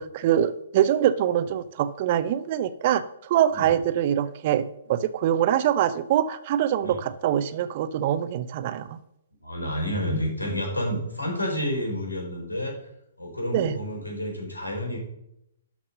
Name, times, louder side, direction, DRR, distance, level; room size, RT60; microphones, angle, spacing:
voice 1, 0.0-9.0 13.5-13.8, right 10 dB, 40° right, 14 dB, 0.7 m, -24 dB
voice 2, 9.4-12.9 13.2-15.0, equal, 90° left, 0 dB, 4.2 m, -29 dB
12.0 x 5.9 x 5.4 m, 0.79 s
figure-of-eight pair, 125°, 0 cm